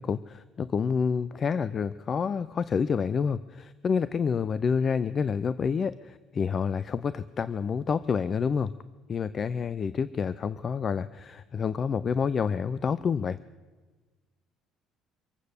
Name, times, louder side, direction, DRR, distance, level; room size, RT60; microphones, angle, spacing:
voice 1, 0.0-8.7 9.1-13.4, left 6 dB, 35° left, 16 dB, 0.4 m, -28 dB
24.5 x 8.3 x 6.6 m, 1.3 s
cardioid pair, 135°, 0 cm